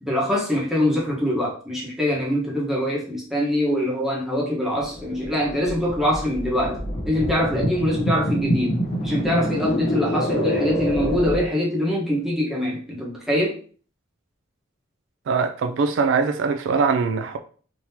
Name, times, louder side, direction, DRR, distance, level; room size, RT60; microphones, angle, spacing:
voice 1, 0.0-6.8 7.0-13.6, equal, ahead, 1.1 m, -24 dB
sound 1, 4.8-11.5, equal, 60° left, 0.9 m, -26 dB
voice 2, 15.3-17.4, right 5 dB, 70° right, 0.3 m, -22 dB
3.6 x 2.9 x 2.8 m
head